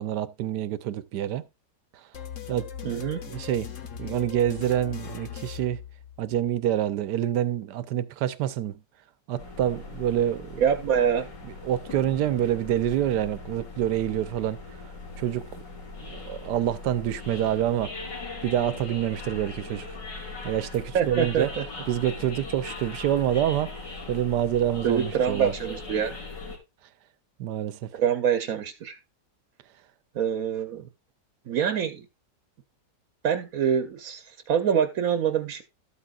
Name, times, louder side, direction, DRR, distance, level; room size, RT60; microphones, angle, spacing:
voice 1, 0.0-1.4 2.5-3.7 4.0-5.8 6.2-8.8 9.3-10.6 11.4-14.6 15.2-15.6 16.0-18.0 18.4-20.0 20.4-21.5 21.9-25.5 27.4-27.9, right 11 dB, 75° right, 1.3 m, -27 dB
sound 1, 2.1-6.5, left 8 dB, 50° left, 1.3 m, -39 dB
voice 2, 2.8-3.2 10.6-11.3 20.9-21.6 24.8-26.2 27.9-29.0 30.1-30.8 31.5-32.1 33.2-35.6, right 8 dB, 60° right, 1.1 m, -25 dB
sound 2, 9.4-26.6, left 3 dB, 80° left, 3.6 m, -40 dB
12.5 x 8.4 x 2.4 m
omnidirectional pair, 1.9 m